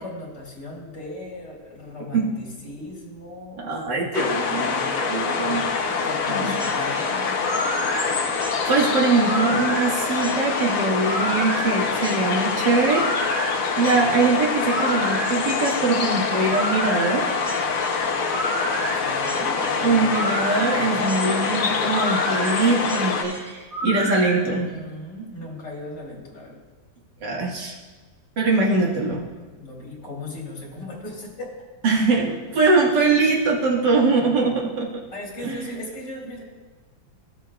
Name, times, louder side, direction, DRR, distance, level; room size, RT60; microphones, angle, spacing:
voice 1, 0.0-3.7 5.9-7.6 18.7-21.1 23.9-26.6 28.5-28.9 29.3-31.5 35.1-36.4, left 1 dB, 85° left, -3 dB, 2.8 m, -37 dB
voice 2, 3.6-5.7 6.3-6.5 8.7-13.1 13.8-17.2 19.8-24.7 27.2-27.8 28.4-29.2 31.8-34.9 35.4-35.7, right 3 dB, 90° right, -3 dB, 2.2 m, -22 dB
sound 1, 4.1-23.2, left 5 dB, 60° left, 1.1 m, -25 dB
sound 2, 6.5-24.4, right 1 dB, 30° right, 1.5 m, -31 dB
15.0 x 7.4 x 2.3 m, 1.3 s
omnidirectional pair, 1.8 m